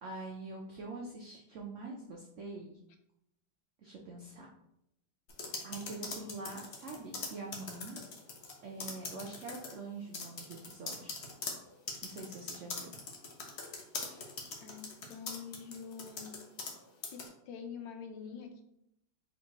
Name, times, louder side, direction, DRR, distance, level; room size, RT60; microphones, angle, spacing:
voice 1, 0.0-2.8 3.8-4.5 5.6-8.0 8.6-11.1 12.0-12.9, right 3 dB, 80° right, -1 dB, 0.6 m, -44 dB
sound 1, 5.3-8.5 8.8-9.7 10.1-16.8 17.0-17.3, left 4 dB, 60° left, 0.7 m, -41 dB
voice 2, 14.6-16.4 17.0-18.6, left 6 dB, 80° left, 5 dB, 1.3 m, -46 dB
4.4 x 3.4 x 2.9 m, 0.80 s
omnidirectional pair, 2.0 m